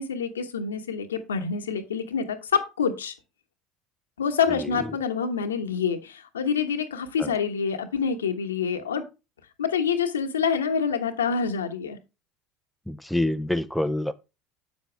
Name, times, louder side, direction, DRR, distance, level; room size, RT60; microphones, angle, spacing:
voice 1, 0.0-3.1 4.2-9.0 9.6-12.0, left 6 dB, 85° left, 1.1 m, -27 dB
voice 2, 12.9-14.1, left 1 dB, ahead, 0.7 m, -26 dB
8.1 x 7.3 x 3.3 m
hypercardioid pair, 70°, 0 cm